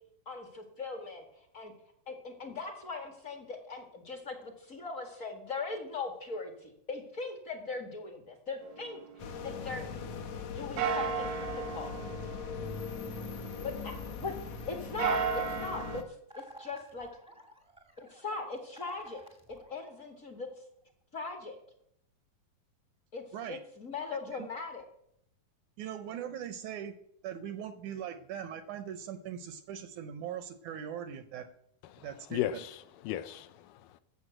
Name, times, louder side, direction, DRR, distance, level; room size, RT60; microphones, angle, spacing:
voice 1, 0.2-1.2 1.5-1.7 2.1-9.0 9.4-9.9 10.5-11.9 13.6-16.0 16.3-17.1 18.0-19.2 19.5-20.5 21.1-21.6 23.1-24.8, left 4 dB, 40° left, 4 dB, 1.2 m, -40 dB
sound 1, 8.6-10.4 10.8-14.3 14.8-16.0, right 6 dB, 90° right, 3.3 m, -36 dB
sound 2, 9.2-16.0, left 5 dB, 65° left, 1.8 m, -40 dB
sound 3, 16.3-20.5, right 1 dB, 5° right, 0.5 m, -53 dB
voice 2, 25.8-26.9 27.2-31.5 32.0-32.6, right 9 dB, 75° right, 10 dB, 1.9 m, -40 dB
voice 3, 31.9-34.0, left 12 dB, 80° left, 11 dB, 2.1 m, -36 dB
14.5 x 7.0 x 7.8 m, 0.73 s
omnidirectional pair, 4.0 m